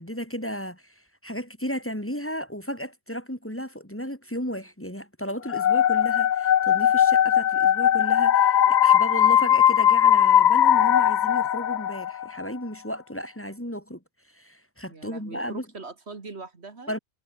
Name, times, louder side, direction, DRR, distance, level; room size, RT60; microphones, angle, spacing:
voice 1, 0.0-14.0 14.3-15.7 16.9-17.0, equal, 10° left, 2.9 m, -34 dB
sound 1, 5.5-12.3, left 10 dB, 55° left, 0.6 m, -19 dB
voice 2, 14.9-16.9, right 4 dB, 70° right, 2.5 m, -41 dB
omnidirectional pair, 1.1 m